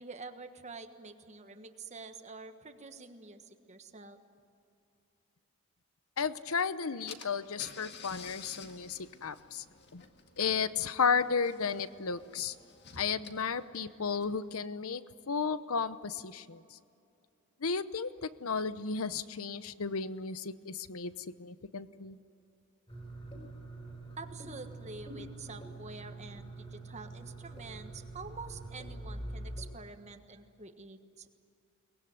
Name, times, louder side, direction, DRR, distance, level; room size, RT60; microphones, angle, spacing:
voice 1, 0.0-4.2 24.2-31.3, right 3 dB, 30° right, 8 dB, 1.4 m, -47 dB
voice 2, 6.2-9.6 9.9-10.0 10.4-12.5 13.0-15.0 15.3-16.8 17.6-18.1 18.4-21.1 21.4-22.2, left 5 dB, 75° left, 14 dB, 0.9 m, -33 dB
Car / Engine, 6.6-6.7 7.1-14.5, left 5 dB, 50° left, 1.9 m, -52 dB
sound 1, 22.9-29.7, right 2 dB, 25° left, 4.5 m, -45 dB
23.0 x 20.0 x 9.6 m, 2.6 s
head